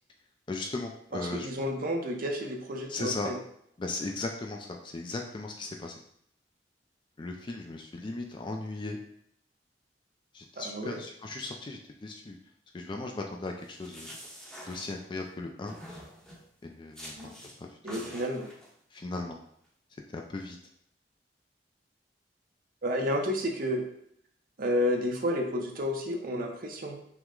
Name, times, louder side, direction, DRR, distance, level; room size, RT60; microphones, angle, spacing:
voice 1, 0.5-1.5 2.9-3.3 3.8-6.0 7.2-9.0 10.3-12.4 12.7-14.1 14.7-15.8 16.6-17.3 17.6-18.2 18.9-19.4 20.1-20.6, left 2 dB, 25° left, 2 dB, 0.4 m, -37 dB
voice 2, 1.1-3.4 10.6-11.0 17.2-17.4 17.8-18.5 22.8-23.8 24.6-27.0, equal, 55° right, 2 dB, 0.7 m, -31 dB
sound 1, 13.6-15.3 15.7-16.5 16.9-17.6 17.9-18.7, equal, 5° left, 0.8 m, -47 dB
5.9 x 2.1 x 3.7 m, 0.70 s
head